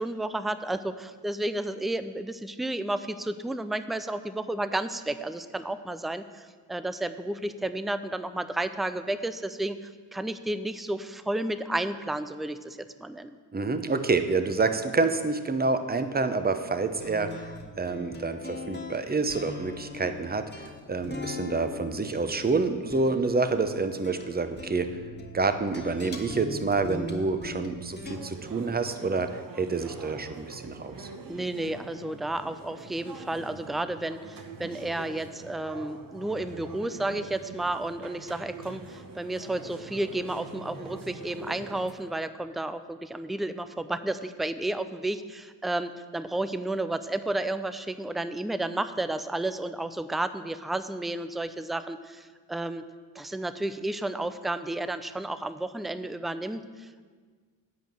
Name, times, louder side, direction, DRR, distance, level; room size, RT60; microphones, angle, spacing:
voice 1, 0.0-13.3 31.3-52.8 53.2-57.1, right 1 dB, ahead, 12 dB, 0.4 m, -32 dB
voice 2, 13.5-17.5 17.8-25.0 25.3-31.1, right 3 dB, 20° right, 9 dB, 0.8 m, -28 dB
sound 1, 17.0-28.2, left 2 dB, 20° left, 1.6 m, -40 dB
sound 2, 28.1-41.9, right 4 dB, 45° right, 1.0 m, -44 dB
8.5 x 5.2 x 7.6 m, 1.6 s
supercardioid pair, 45°, 49 cm